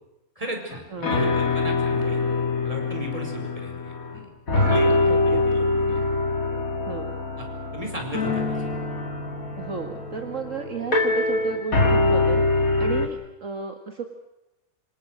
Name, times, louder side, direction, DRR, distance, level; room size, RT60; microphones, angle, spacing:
voice 1, 0.4-2.2 2.6-4.3 4.5-6.0 7.4-8.8, right 1 dB, 25° right, 3 dB, 5.2 m, -36 dB
sound 1, 0.7-0.8 1.0-4.2 4.5-13.1, left 2 dB, 70° left, 2.8 m, -24 dB
voice 2, 0.9-1.4 4.5-5.4 6.0-6.1 6.9-7.2 9.6-12.4 12.8-14.1, right 5 dB, 60° right, 4 dB, 2.1 m, -34 dB
26.5 x 26.0 x 6.4 m, 0.94 s
omnidirectional pair, 1.5 m